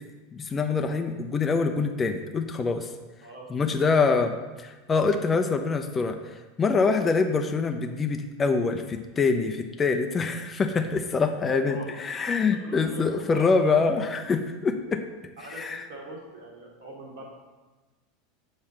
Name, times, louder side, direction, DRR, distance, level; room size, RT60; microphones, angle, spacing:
voice 1, 0.3-2.9 3.5-4.3 4.6-15.0 15.6-15.8, left 4 dB, 25° left, 5 dB, 0.5 m, -25 dB
voice 2, 3.2-4.0 11.5-12.4 12.6-13.7 15.4-17.2, right 1 dB, 65° right, -3 dB, 1.5 m, -42 dB
7.1 x 3.2 x 6.0 m, 1.2 s
figure-of-eight pair, 80°, 0 cm